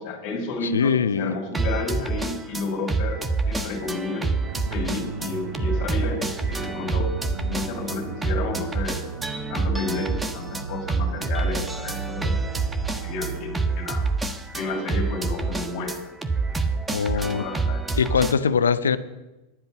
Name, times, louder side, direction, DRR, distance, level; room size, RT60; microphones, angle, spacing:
voice 1, 0.0-4.3 4.7-7.1 7.5-9.1 9.5-12.5 12.9-14.0 14.5-15.9 16.5-18.0, left 3 dB, 45° left, 2 dB, 2.6 m, -31 dB
voice 2, 0.6-1.3 16.9-17.4 18.0-19.0, left 6 dB, 70° left, 14 dB, 0.5 m, -22 dB
sound 1, 1.5-18.3, right 3 dB, 10° right, 0.7 m, -27 dB
sound 2, 4.4-13.6, right 9 dB, 60° right, 0.3 m, -37 dB
10.0 x 7.9 x 6.6 m, 1.0 s
figure-of-eight pair, 90°, 0 cm